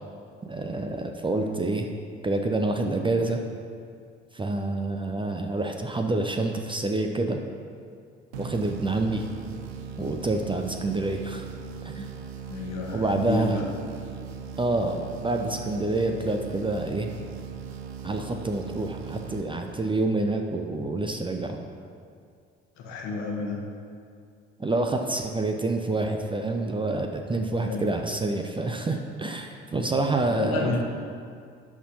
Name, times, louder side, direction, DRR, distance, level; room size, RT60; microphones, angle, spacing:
voice 1, 0.4-1.9 2.2-3.4 4.3-7.4 8.4-9.2 10.0-11.5 11.8-12.1 12.9-13.6 14.6-17.1 18.0-21.6 24.6-30.8, right 2 dB, 15° right, 4 dB, 0.6 m, -27 dB
sound 1, 8.3-20.0, right 7 dB, 75° right, 0.6 m, -39 dB
voice 2, 12.5-13.6 22.8-23.6 27.7-27.9 30.3-30.8, left 4 dB, 55° left, 0 dB, 1.4 m, -31 dB
11.5 x 4.3 x 5.5 m, 2.3 s
figure-of-eight pair, 50°, 32 cm